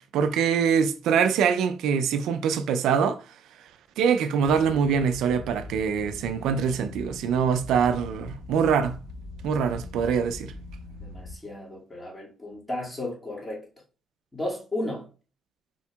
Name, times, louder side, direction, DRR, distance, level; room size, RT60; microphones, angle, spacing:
voice 1, 0.1-3.2 4.0-9.0 9.4-10.5, right 7 dB, 85° right, 0.4 m, -24 dB
sound 1, 4.4-11.3, left 2 dB, 90° left, 1.3 m, -42 dB
voice 2, 11.0-13.7 14.3-15.1, left 1 dB, 15° left, 2.2 m, -34 dB
4.4 x 4.2 x 2.3 m
cardioid pair, 90°, 0 cm